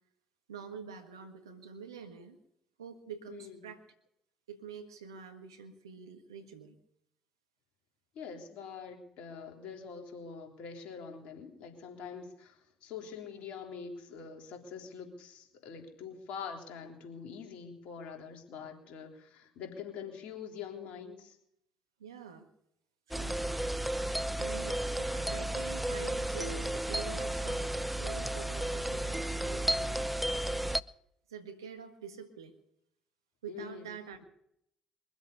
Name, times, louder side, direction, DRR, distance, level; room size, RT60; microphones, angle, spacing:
voice 1, 0.5-2.4 2.8-3.8 4.5-6.8 22.0-22.5 23.1-23.5 24.4-30.8 31.3-32.5 33.4-34.2, right 6 dB, 90° right, 7 dB, 1.6 m, -47 dB
voice 2, 3.3-3.6 8.1-21.4 33.5-33.9, left 6 dB, 65° left, 2 dB, 3.6 m, -45 dB
sound 1, 23.1-30.8, right 1 dB, 5° right, 0.6 m, -33 dB
23.0 x 8.0 x 6.7 m, 0.75 s
hypercardioid pair, 55°, 2 cm